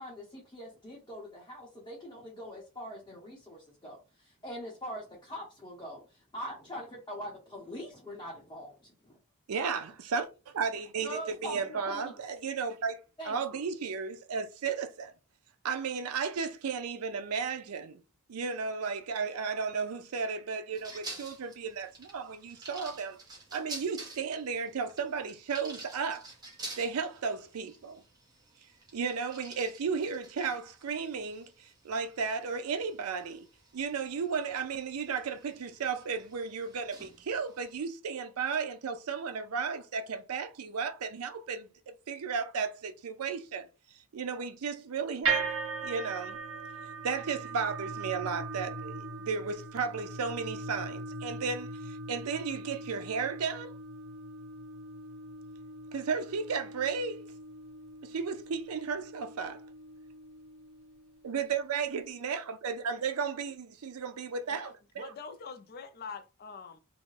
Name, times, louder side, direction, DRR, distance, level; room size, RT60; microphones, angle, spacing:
voice 1, 0.0-9.2 11.0-12.1 13.2-13.7, equal, 20° left, 0.8 m, -43 dB
voice 2, 9.5-10.3 10.5-15.1 15.6-18.0 18.3-23.2 23.5-26.3 26.8-28.0 28.9-33.5 33.7-41.7 42.1-43.7 44.1-45.6 45.8-46.4 47.0-53.7 55.9-57.2 58.0-59.6 61.2-65.1, right 5 dB, 90° right, 0.5 m, -34 dB
sound 1, 20.7-37.8, right 2 dB, 20° right, 0.7 m, -49 dB
sound 2, 45.2-61.5, right 4 dB, 65° right, 0.9 m, -39 dB
voice 3, 64.5-66.8, left 5 dB, 45° left, 0.4 m, -45 dB
2.5 x 2.1 x 3.1 m
head